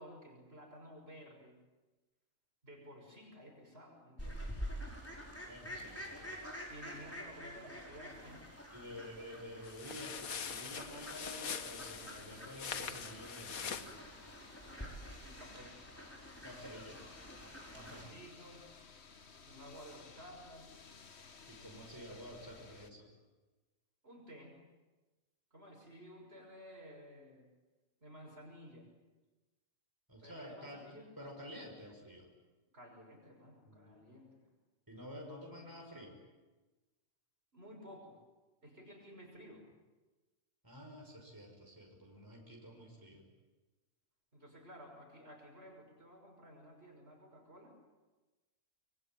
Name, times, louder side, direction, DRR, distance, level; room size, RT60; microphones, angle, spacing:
voice 1, 0.0-1.6 2.6-4.5 6.7-8.5 14.6-15.7 17.7-18.7 19.4-20.7 24.0-24.6 25.5-27.5 28.0-28.9 30.2-31.1 32.7-34.5 37.5-38.2 38.6-39.6 44.3-47.7, equal, 45° right, 1 dB, 6.1 m, -54 dB
Fowl, 4.2-18.0, equal, 10° left, 5.4 m, -48 dB
voice 2, 5.5-6.5 8.7-14.0 16.4-17.1 17.7-18.1 21.5-23.1 30.1-32.3 33.7-34.0 34.9-36.2 40.6-43.2, equal, 15° right, 0 dB, 5.9 m, -50 dB
sound 1, 9.6-14.0, left 6 dB, 85° left, 1.7 m, -43 dB
sound 2, 10.7-22.9, left 5 dB, 50° left, 1.6 m, -57 dB
26.0 x 23.0 x 9.2 m, 1.2 s
omnidirectional pair, 1.4 m